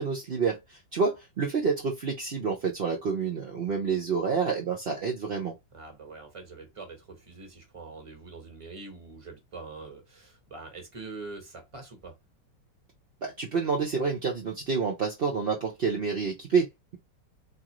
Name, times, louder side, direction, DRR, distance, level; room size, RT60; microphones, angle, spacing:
voice 1, 0.0-5.5 13.2-17.0, right 5 dB, 55° right, 0.6 m, -28 dB
voice 2, 5.7-12.1, right 3 dB, 20° right, 1.0 m, -44 dB
3.7 x 2.9 x 3.0 m
omnidirectional pair, 1.9 m